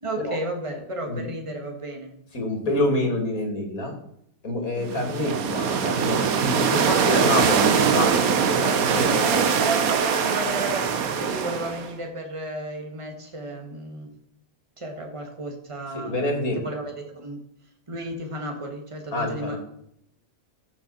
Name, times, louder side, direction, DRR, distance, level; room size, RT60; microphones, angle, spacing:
voice 1, 0.0-2.2 4.8-5.1 9.2-14.1 14.8-16.2 16.5-17.4 17.9-19.6, right 2 dB, 20° right, 3 dB, 1.8 m, -33 dB
voice 2, 2.3-3.9 4.4-9.5 15.9-16.6 19.1-19.6, left 1 dB, 80° left, 2 dB, 3.1 m, -27 dB
sound 1, 4.8-11.9, right 6 dB, 85° right, 1.4 m, -22 dB
14.5 x 6.1 x 4.3 m, 0.74 s
omnidirectional pair, 1.5 m